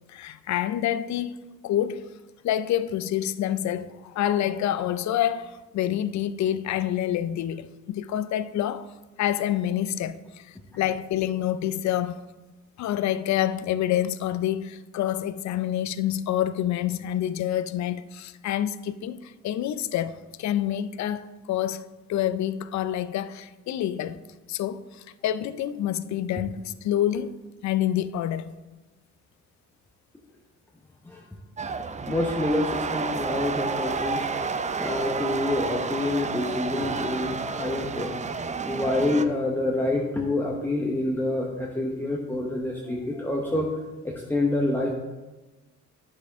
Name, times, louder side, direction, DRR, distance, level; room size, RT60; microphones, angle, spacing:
voice 1, 0.1-1.4 1.6-2.1 2.4-8.9 9.2-12.2 12.8-21.8 22.1-24.2 24.5-27.4 27.6-28.5, left 11 dB, 65° left, 0.5 m, -27 dB
sound 1, 31.6-39.2, right 4 dB, 25° right, 0.5 m, -30 dB
voice 2, 32.1-34.3 34.8-38.1 38.7-43.7 44.0-45.0, left 2 dB, 5° left, 1.0 m, -27 dB
9.7 x 6.4 x 3.6 m
cardioid pair, 90°, 30 cm